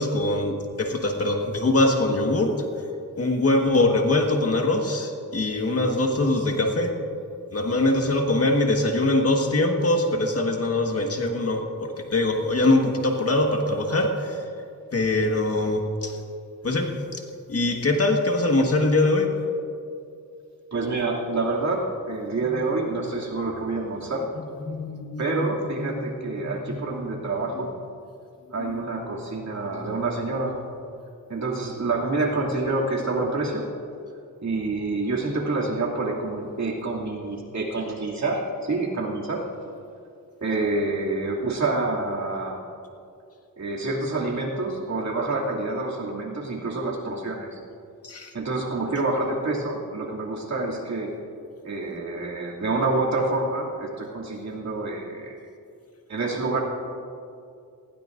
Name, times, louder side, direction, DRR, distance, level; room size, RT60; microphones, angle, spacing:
voice 1, 0.0-2.5 3.2-6.9 7.5-14.4 14.9-16.2 16.6-17.2 17.5-19.3 22.4-22.7 24.3-27.0 27.4-27.7 28.6-28.8 29.5-30.2 48.0-48.3, left 2 dB, 45° left, 2 dB, 1.7 m, -23 dB
voice 2, 20.7-24.3 25.2-27.8 28.5-30.6 31.3-33.7 34.4-39.4 40.4-42.6 43.6-47.5 48.3-51.2 51.6-55.4 56.1-56.6, right 2 dB, 55° right, -2 dB, 2.7 m, -27 dB
19.0 x 16.5 x 2.6 m, 2.5 s
cardioid pair, 85°, 34 cm